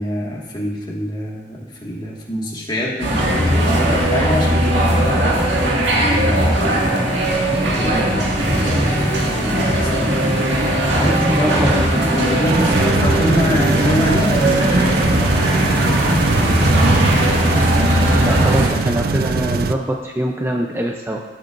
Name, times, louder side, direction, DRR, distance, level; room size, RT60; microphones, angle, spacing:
voice 1, 0.0-6.8 7.5-10.2 11.0-11.6 11.9-17.0, left 1 dB, 25° left, -3 dB, 1.9 m, -26 dB
sound 1, 3.0-18.7, right 1 dB, 80° right, 2.0 m, -18 dB
voice 2, 11.3-11.7 18.2-21.2, right 1 dB, 15° right, 1 dB, 0.6 m, -23 dB
sound 2, 12.4-19.7, right 4 dB, 55° right, 0.4 m, -22 dB
16.5 x 7.6 x 2.6 m, 1.2 s
head